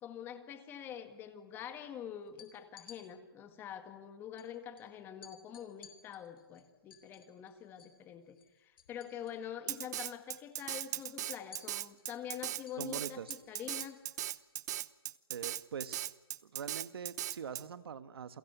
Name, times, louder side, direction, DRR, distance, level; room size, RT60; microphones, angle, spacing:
voice 1, 0.0-14.0, left 9 dB, 15° left, 9 dB, 1.9 m, -46 dB
sound 1, 2.3-3.0 4.4-4.5 4.8-4.9 5.2-8.0 8.3-9.5 9.7-10.1 10.4-14.5, left 7 dB, 65° left, 3.7 m, -57 dB
Drum kit, 9.7-17.6, right 12 dB, 45° right, 0.9 m, -38 dB
voice 2, 12.8-13.3 15.3-16.1 16.4-18.4, right 7 dB, 75° right, 12 dB, 1.6 m, -43 dB
29.5 x 23.0 x 8.2 m, 1.0 s
hypercardioid pair, 160°, 13 cm